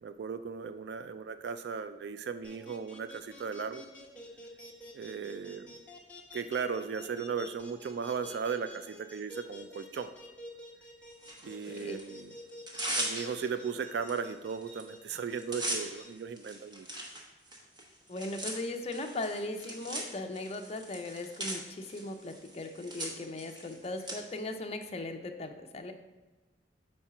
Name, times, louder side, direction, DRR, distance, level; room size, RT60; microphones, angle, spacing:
voice 1, 0.0-3.8 4.9-5.7 6.3-10.1 11.4-12.3 13.0-16.9, right 6 dB, 65° right, 11 dB, 0.3 m, -36 dB
sound 1, 2.4-16.1, equal, 10° left, 0.9 m, -49 dB
Tearing, 11.2-12.0 12.5-13.6 14.1-14.2 14.5-14.8 15.1-24.1, right 1 dB, 25° right, 1.1 m, -39 dB
voice 2, 11.7-12.0 18.1-25.9, left 2 dB, 35° left, 5 dB, 0.5 m, -38 dB
4.6 x 4.4 x 5.8 m, 1.2 s
head